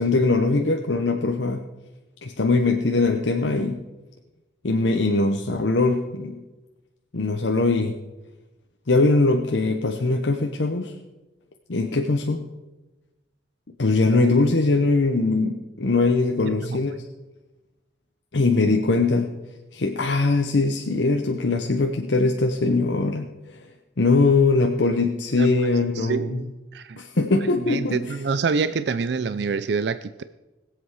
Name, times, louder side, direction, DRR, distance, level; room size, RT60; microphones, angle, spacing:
voice 1, 0.0-1.7 2.2-3.8 4.6-6.4 7.1-8.0 8.9-10.9 11.7-12.4 13.8-17.0 18.3-19.3 19.7-23.3 23.5-23.6 24.0-26.4 27.0-28.1, left 3 dB, 80° left, 3 dB, 0.9 m, -21 dB
voice 2, 25.9-27.0 27.7-30.2, right 5 dB, 65° right, 13 dB, 0.4 m, -26 dB
20.0 x 7.9 x 4.8 m, 1.1 s
head